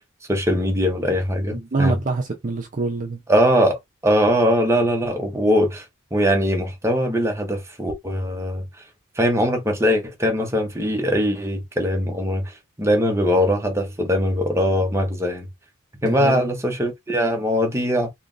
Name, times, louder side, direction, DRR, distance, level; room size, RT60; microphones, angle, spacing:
voice 1, 0.3-2.0 3.3-5.8 6.1-8.6 9.2-15.5 16.0-18.1, equal, 15° right, 0.9 m, -21 dB
voice 2, 1.5-3.2 16.0-16.5, right 3 dB, 40° right, 0.5 m, -25 dB
3.0 x 2.5 x 3.8 m
head